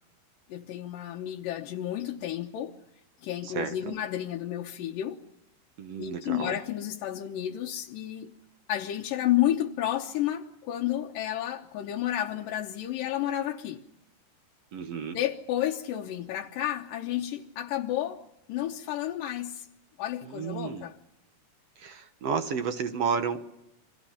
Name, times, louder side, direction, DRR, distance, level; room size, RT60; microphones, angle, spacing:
voice 1, 0.5-2.8 3.2-5.2 6.0-8.3 8.7-13.8 15.1-18.2 18.5-19.7 20.0-21.0, left 12 dB, 85° left, 2.7 m, -31 dB
voice 2, 3.4-4.0 5.8-6.6 14.7-15.2 20.3-20.9 21.8-23.4, right 6 dB, 60° right, 2.0 m, -32 dB
29.5 x 24.0 x 5.8 m
omnidirectional pair, 3.8 m